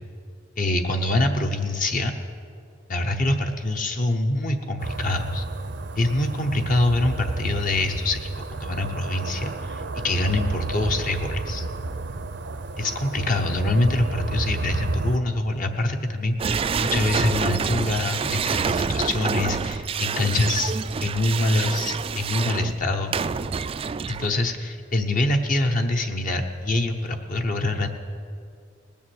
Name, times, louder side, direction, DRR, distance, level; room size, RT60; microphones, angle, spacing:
voice 1, 0.6-2.1 2.9-5.5 6.0-11.7 12.8-20.7 21.0-23.2 24.1-27.9, left 2 dB, 45° left, 4 dB, 0.9 m, -25 dB
sound 1, 4.8-15.2, right 2 dB, 65° right, 0.7 m, -31 dB
sound 2, 16.4-24.5, right 5 dB, 30° right, 0.3 m, -27 dB
19.0 x 7.1 x 7.9 m, 2.3 s
head